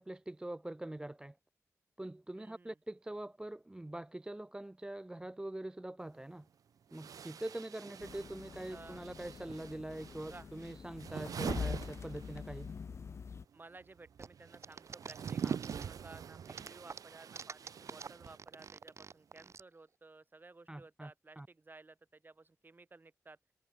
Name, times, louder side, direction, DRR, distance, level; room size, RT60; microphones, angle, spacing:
voice 1, 0.0-1.4 2.0-6.5 6.9-12.7 15.4-15.5 20.7-21.1 21.4-21.5, right 1 dB, 15° right, 0.4 m, -44 dB
voice 2, 2.3-2.8 8.7-9.1 10.2-10.5 13.5-23.5, right 3 dB, 35° right, 3.2 m, -56 dB
sound 1, 6.0-6.1 6.9-12.7 13.0-18.8, right 7 dB, 90° right, 0.4 m, -44 dB
sound 2, 8.0-13.5, left 5 dB, 50° left, 0.3 m, -44 dB
sound 3, 14.2-16.1 16.5-19.6, right 5 dB, 55° right, 1.4 m, -47 dB
wide cardioid pair, 105°, 6 cm